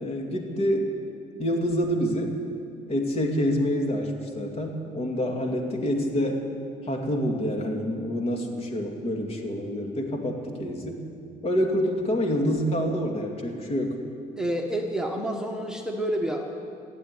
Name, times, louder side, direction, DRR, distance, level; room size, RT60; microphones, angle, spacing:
voice 1, 0.0-0.9 1.4-2.3 2.9-6.4 6.8-11.0 11.4-14.0, equal, 40° left, 2 dB, 2.4 m, -27 dB
voice 2, 14.4-16.4, right 1 dB, 5° right, 1 dB, 1.4 m, -28 dB
16.0 x 8.5 x 9.6 m, 2.4 s
cardioid pair, 95°, 15 cm